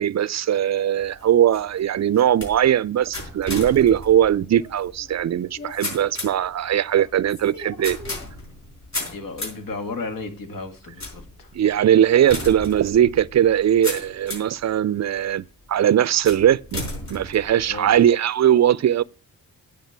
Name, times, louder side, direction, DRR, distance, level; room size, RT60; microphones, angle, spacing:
voice 1, 0.0-8.0 11.5-19.0, right 10 dB, 50° right, 0.4 m, -20 dB
sound 1, 1.0-14.6 15.2-15.6 16.2-18.1, left 2 dB, 50° left, 5.7 m, -35 dB
voice 2, 9.0-11.5 17.7-18.0, left 3 dB, 70° left, 1.9 m, -34 dB
9.3 x 5.1 x 8.0 m
cardioid pair, 65°, 35 cm